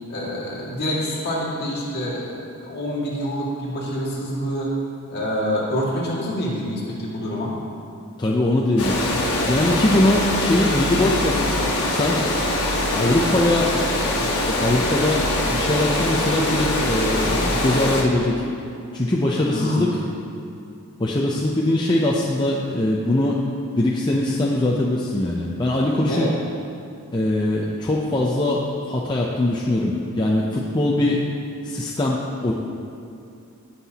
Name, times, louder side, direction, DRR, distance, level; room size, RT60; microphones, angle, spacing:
voice 1, 0.1-4.8 5.1-7.6 19.5-20.0 26.1-26.3 30.8-31.2, equal, 45° left, -6 dB, 2.1 m, -27 dB
voice 2, 8.2-9.2 9.5-11.4 11.9-12.3 12.9-13.7 14.2-18.4 18.9-19.9 21.0-23.5 23.8-26.3 27.1-31.2 31.6-32.5, left 1 dB, 20° left, -3 dB, 0.5 m, -21 dB
Water, 8.8-18.0, left 1 dB, 75° left, 1.3 m, -23 dB
17.0 x 5.8 x 2.9 m, 2.5 s
head